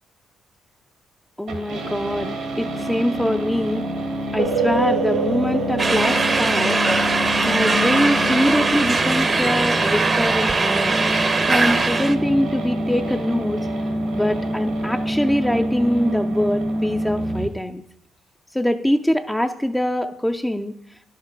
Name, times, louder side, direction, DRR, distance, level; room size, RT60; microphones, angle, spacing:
voice 1, 1.4-3.8 4.3-6.8 7.4-11.0 11.5-13.6 14.1-17.8 18.5-20.7, left 1 dB, 5° left, 5 dB, 0.4 m, -23 dB
sound 1, 1.5-17.5, equal, 85° right, 2.0 m, -27 dB
sound 2, 4.4-7.9, right 5 dB, 65° right, 1.2 m, -26 dB
sound 3, 5.8-12.2, right 3 dB, 35° right, 0.7 m, -20 dB
10.5 x 6.7 x 4.6 m, 0.72 s
cardioid pair, 90°, 0 cm